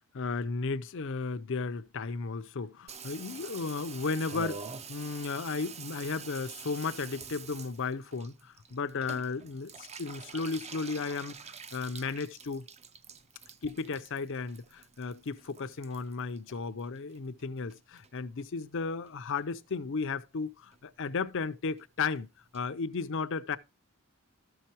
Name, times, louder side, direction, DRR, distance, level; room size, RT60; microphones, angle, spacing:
voice 1, 0.1-4.6 4.9-11.4 11.7-12.7 13.6-22.3 22.5-23.6, left 4 dB, 60° left, 0.6 m, -34 dB
Water tap faucet / Bathtub (filling or washing), 2.9-17.4 17.7-18.4 18.8-18.9 19.1-19.2 19.4-19.8 20.0-20.1 20.4-20.5 20.7-20.8 21.1-21.2 21.4-21.5 21.8-21.9 22.1-22.2 22.5-22.6, right 5 dB, 30° right, 0.6 m, -46 dB
13.5 x 5.7 x 2.9 m
head